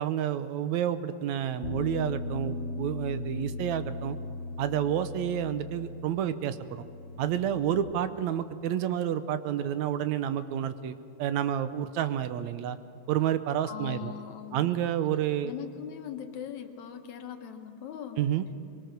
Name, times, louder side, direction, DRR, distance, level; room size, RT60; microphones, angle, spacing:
voice 1, 0.0-4.2 4.6-6.9 7.2-12.8 13.1-14.1 14.5-15.5 18.2-18.5, right 10 dB, 75° right, 11 dB, 2.1 m, -29 dB
Bass guitar, 1.6-7.9, left 3 dB, 45° left, 2.9 m, -38 dB
voice 2, 13.7-14.8 15.4-18.2, left 9 dB, 70° left, 6 dB, 2.5 m, -40 dB
23.5 x 23.0 x 6.6 m, 2.6 s
omnidirectional pair, 3.5 m